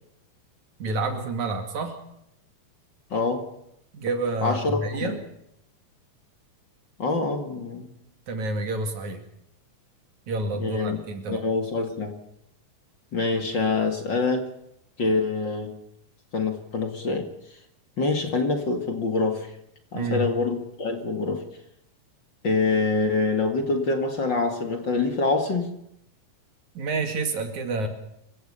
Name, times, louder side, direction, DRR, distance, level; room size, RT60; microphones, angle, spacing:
voice 1, 0.8-2.0 3.9-5.2 8.3-9.2 10.3-11.5 19.9-20.3 26.8-27.9, right 3 dB, 65° right, 6 dB, 3.8 m, -29 dB
voice 2, 3.1-3.5 4.4-5.2 7.0-7.9 10.5-11.0 11.3-12.2 13.1-14.5 15.0-15.7 16.3-17.3 18.0-19.5 19.9-21.4 22.4-25.7 27.8-27.9, left 3 dB, 40° left, 5 dB, 2.5 m, -25 dB
26.0 x 16.5 x 6.9 m, 0.78 s
omnidirectional pair, 3.6 m